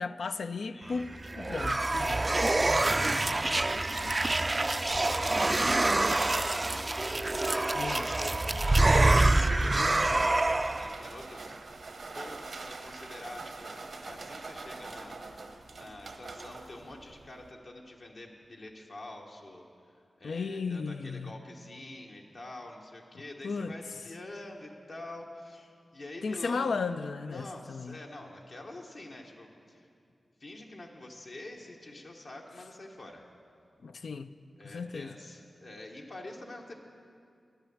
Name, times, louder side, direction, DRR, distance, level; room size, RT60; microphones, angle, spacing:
voice 1, 0.0-2.2 4.0-4.1 7.7-8.1 20.2-21.3 23.4-23.7 26.2-28.0 33.8-34.3 34.6-35.1, left 4 dB, 80° left, 0.4 m, -35 dB
voice 2, 0.7-1.1 2.7-4.0 4.3-11.6 12.1-15.2 15.7-19.6 20.2-26.7 27.3-29.9 30.4-33.3 34.6-36.7, left 2 dB, 65° left, 1.1 m, -46 dB
sound 1, 1.0-11.0, right 2 dB, 30° right, 0.3 m, -26 dB
sound 2, 8.8-17.5, right 3 dB, 75° right, 0.9 m, -45 dB
10.5 x 8.9 x 7.1 m
cardioid pair, 65°, 0 cm